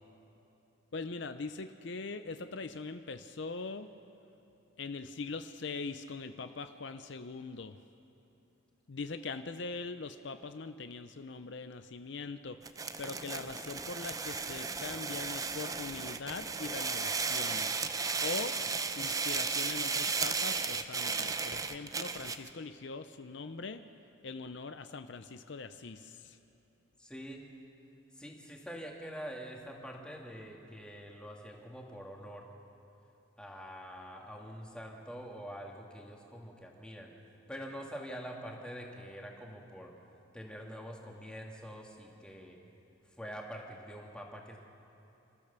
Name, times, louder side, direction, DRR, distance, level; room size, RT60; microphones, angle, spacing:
voice 1, 0.9-3.9 4.8-7.8 8.9-17.7 18.2-18.6 19.0-23.9 24.2-26.4, left 4 dB, 60° left, 10 dB, 0.6 m, -42 dB
sound 1, 12.6-22.5, right 4 dB, 15° right, 0.5 m, -35 dB
voice 2, 27.0-27.5 28.2-32.5 33.4-37.1 37.5-39.9 40.3-42.6 43.2-44.6, equal, 5° left, -1 dB, 2.0 m, -45 dB
28.5 x 14.0 x 6.8 m, 2.9 s
head